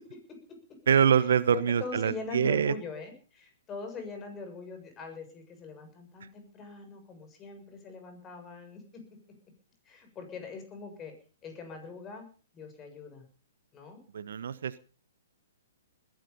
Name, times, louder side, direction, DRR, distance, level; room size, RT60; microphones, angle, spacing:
voice 1, 0.0-0.8 1.5-9.2 9.8-11.1 11.4-12.3 12.5-13.3 13.7-14.0, left 4 dB, 20° left, 6 dB, 6.9 m, -42 dB
voice 2, 0.9-2.7 14.1-14.8, right 8 dB, 65° right, 16 dB, 1.1 m, -25 dB
20.5 x 13.0 x 5.5 m, 0.40 s
figure-of-eight pair, 120°, 0 cm